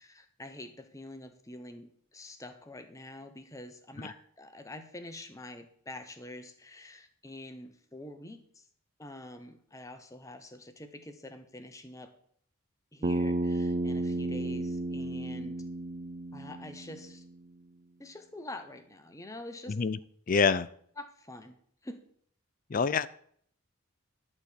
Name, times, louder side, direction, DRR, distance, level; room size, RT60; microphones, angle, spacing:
voice 1, 0.0-8.7 9.0-12.1 12.9-15.7 16.3-17.2 18.0-19.8 21.0-21.6 21.8-22.0, left 1 dB, 15° left, 1.0 m, -46 dB
Bass guitar, 13.0-17.3, right 2 dB, 30° right, 0.3 m, -32 dB
voice 2, 19.7-20.0 20.3-20.7 22.7-23.1, left 5 dB, 40° left, 0.4 m, -26 dB
11.5 x 4.3 x 8.2 m
head